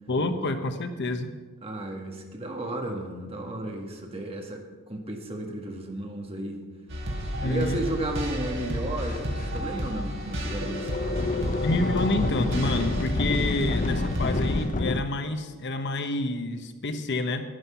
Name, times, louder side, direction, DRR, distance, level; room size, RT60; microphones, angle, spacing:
voice 1, 0.1-1.3 7.4-7.8 11.6-17.4, left 2 dB, 55° left, 7 dB, 1.0 m, -28 dB
voice 2, 1.6-6.6 7.4-11.4, right 1 dB, 30° right, 2 dB, 1.8 m, -34 dB
sound 1, 6.9-14.6, equal, 60° right, 3.0 m, -32 dB
sound 2, 7.9-8.0 8.7-8.8 9.0-9.6 10.2-15.0, left 2 dB, 35° left, 0.6 m, -29 dB
11.5 x 11.0 x 5.7 m, 1.3 s
head